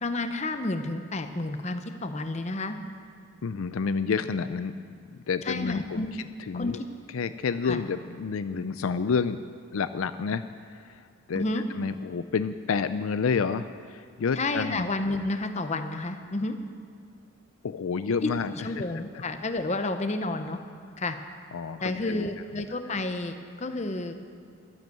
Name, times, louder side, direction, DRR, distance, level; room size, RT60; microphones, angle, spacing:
voice 1, 0.0-2.8 5.4-6.1 6.5-6.9 7.6-7.8 11.3-11.6 14.3-16.6 18.2-18.3 18.6-20.6 21.0-21.2 21.8-24.2, left 2 dB, 30° left, 8 dB, 0.7 m, -30 dB
voice 2, 3.4-4.7 5.3-6.1 6.5-6.8 7.1-9.4 9.7-10.4 10.7-11.0 11.3-11.4 11.8-14.8 17.6-18.8 21.5-22.3, left 5 dB, 70° left, 12 dB, 0.4 m, -29 dB
12.0 x 10.5 x 7.7 m, 2.3 s
head